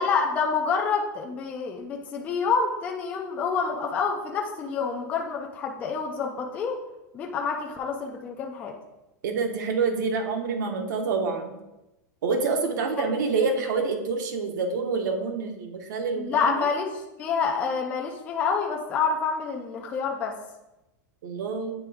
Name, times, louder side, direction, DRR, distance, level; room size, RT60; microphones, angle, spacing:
voice 1, 0.0-6.8 7.1-8.7 16.2-20.3, left 5 dB, 15° left, 0 dB, 0.4 m, -27 dB
voice 2, 9.2-11.6 12.2-16.7 21.2-21.7, right 4 dB, 85° right, 4 dB, 1.0 m, -27 dB
8.4 x 3.3 x 3.5 m, 0.97 s
supercardioid pair, 180°, 10 cm